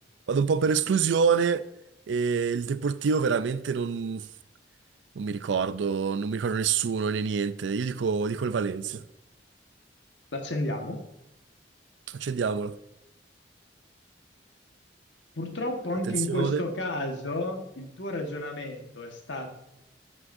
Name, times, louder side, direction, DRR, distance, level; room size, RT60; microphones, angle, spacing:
voice 1, 0.3-1.6 2.1-4.3 5.2-9.0 12.1-12.7 16.1-16.6, right 5 dB, 85° right, 0.4 m, -26 dB
voice 2, 10.3-11.0 15.3-19.5, left 1 dB, 90° left, 1.4 m, -32 dB
12.5 x 6.1 x 2.6 m
head